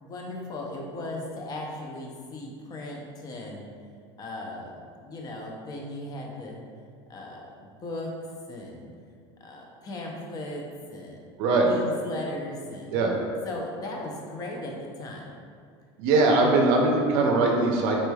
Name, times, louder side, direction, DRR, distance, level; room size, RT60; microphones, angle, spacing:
voice 1, 0.0-3.6 4.2-6.6 7.1-8.1 8.5-8.9 9.4-10.6 10.9-11.2 11.6-13.0 13.4-15.3 16.7-16.9, left 1 dB, 30° left, 0 dB, 0.6 m, -37 dB
voice 2, 16.0-18.0, right 3 dB, 70° right, 0 dB, 0.5 m, -21 dB
4.2 x 3.1 x 2.3 m, 2.2 s
supercardioid pair, 125°, 13 cm